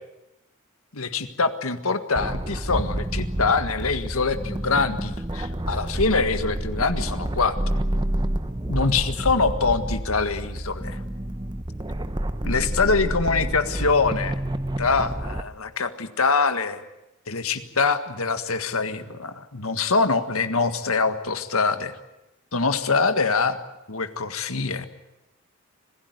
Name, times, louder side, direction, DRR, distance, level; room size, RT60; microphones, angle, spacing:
voice 1, 0.9-7.6 8.7-11.0 12.4-14.4 14.8-16.8 17.3-21.9 22.5-23.6 23.9-24.9, left 4 dB, 75° left, 9 dB, 1.7 m, -24 dB
sound 1, 2.2-15.4, right 1 dB, 20° right, 1.0 m, -29 dB
26.0 x 16.5 x 9.4 m, 0.95 s
head